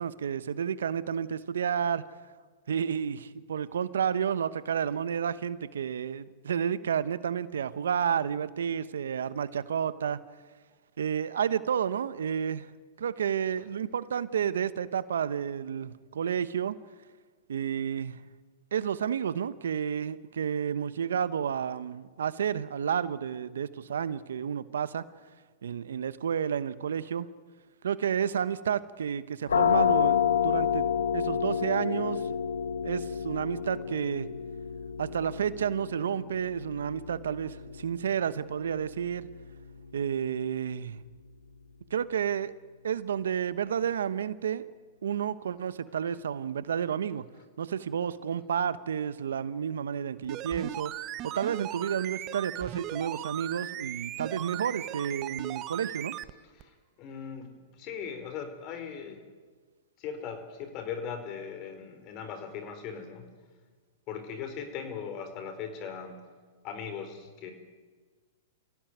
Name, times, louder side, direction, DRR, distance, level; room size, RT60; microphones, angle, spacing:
voice 1, 0.0-2.0 2.7-10.2 11.0-12.7 13.0-16.8 17.5-18.2 18.7-25.0 25.6-27.3 27.8-30.8 31.1-32.2 32.8-34.3 35.0-39.3 39.9-41.0 41.9-42.5 42.8-44.7 45.0-47.2 47.6-50.9 51.2-56.2, right 8 dB, 80° right, 15 dB, 1.1 m, -31 dB
sound 1, 29.5-41.0, left 8 dB, 85° left, 1.3 m, -30 dB
sound 2, 50.2-56.3 56.6-56.7, right 13 dB, 35° right, 1.0 m, -38 dB
voice 2, 56.5-59.2 60.0-63.3 64.1-66.2 66.6-67.5, left 7 dB, 40° left, 8 dB, 4.6 m, -39 dB
24.5 x 16.5 x 9.4 m, 1.5 s
hypercardioid pair, 120°, 0 cm